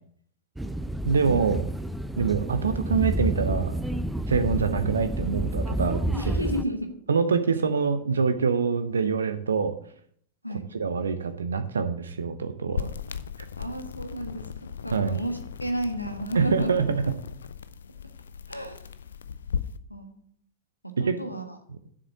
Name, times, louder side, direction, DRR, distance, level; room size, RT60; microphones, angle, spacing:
sound 1, 0.6-6.6, right 1 dB, 5° right, 0.5 m, -29 dB
voice 1, 1.0-1.6 2.2-3.8 4.3-6.1 7.1-9.8 10.7-12.9 13.4-13.5 14.9-15.2 16.3-17.0 21.0-21.2, right 5 dB, 70° right, 10 dB, 0.8 m, -25 dB
voice 2, 6.1-6.9 10.4-10.7 13.6-14.5 14.8-16.7 18.5-18.9 19.9-20.2 20.8-21.6, right 1 dB, 90° left, 6 dB, 1.3 m, -32 dB
sound 2, 12.7-19.8, left 7 dB, 70° left, 0.5 m, -37 dB
7.5 x 6.6 x 7.5 m, 0.62 s
figure-of-eight pair, 90°, 0 cm